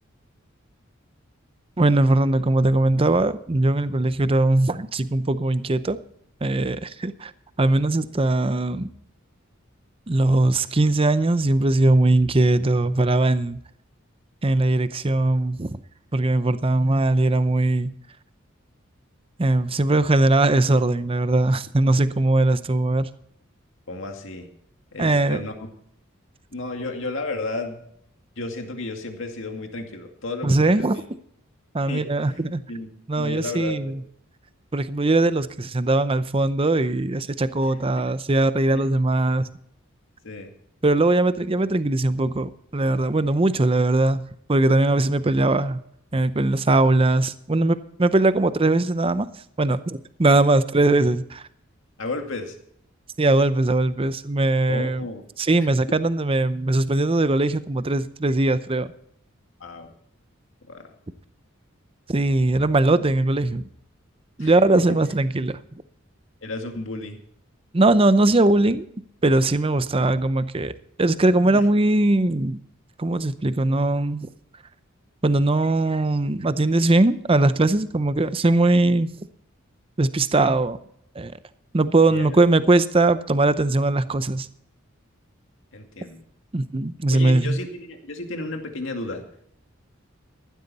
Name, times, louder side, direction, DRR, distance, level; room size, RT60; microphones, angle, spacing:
voice 1, 1.8-6.0 6.4-7.3 7.6-8.9 10.1-13.6 14.4-15.8 16.1-17.9 19.4-23.1 25.0-25.4 30.4-31.0 31.7-32.6 33.1-34.0 34.7-39.5 40.8-45.8 46.1-49.3 49.6-51.4 53.2-55.0 55.4-58.9 62.1-63.6 64.4-65.6 67.7-68.9 69.2-70.7 71.0-72.6 73.0-74.3 75.2-79.1 80.0-80.8 81.2-81.3 81.7-84.5 86.5-87.6, right 2 dB, 25° right, 0.6 m, -20 dB
voice 2, 23.9-24.5 24.9-25.7 26.5-27.8 28.4-31.0 31.8-32.3 32.7-32.9 33.2-33.9 37.7-38.1 38.7-38.8 40.2-40.5 52.0-52.6 54.7-55.2 55.9-56.0 59.6-59.9 60.7-60.8 64.4-64.5 66.4-67.2 71.5-71.7 82.1-82.3 85.7-86.2 87.1-89.3, left 2 dB, 65° left, 2.2 m, -33 dB
15.0 x 12.0 x 4.2 m
head